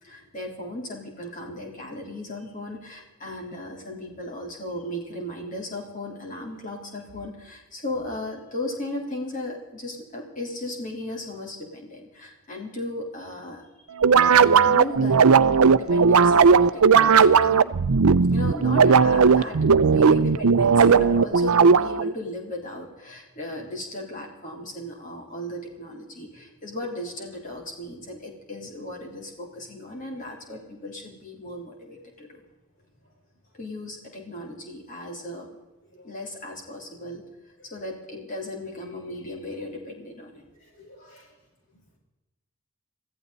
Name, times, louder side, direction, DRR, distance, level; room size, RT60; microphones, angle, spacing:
voice 1, 0.0-13.6 13.9-14.0 14.4-15.3 15.7-17.6 18.3-32.4 33.5-35.5 36.0-37.2 37.6-40.5 40.8-40.9, left 1 dB, 35° left, 0 dB, 3.7 m, -36 dB
sound 1, 14.0-22.1, right 5 dB, 85° right, 0.6 m, -17 dB
voice 2, 40.6-41.3 41.7-42.0, left 1 dB, 55° left, -3 dB, 7.2 m, -55 dB
23.5 x 15.0 x 4.1 m, 1.1 s
head